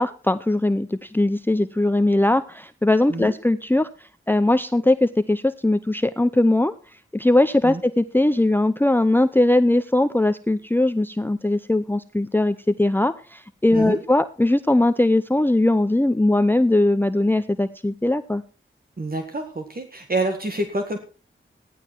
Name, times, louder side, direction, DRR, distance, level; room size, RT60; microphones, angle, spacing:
voice 1, 0.0-3.9 4.3-6.8 7.1-18.4, left 1 dB, 10° left, 13 dB, 0.6 m, -20 dB
voice 2, 13.7-14.0 19.0-21.0, right 2 dB, 45° right, 4 dB, 1.7 m, -27 dB
14.5 x 10.5 x 4.5 m, 0.36 s
cardioid pair, 45°, 21 cm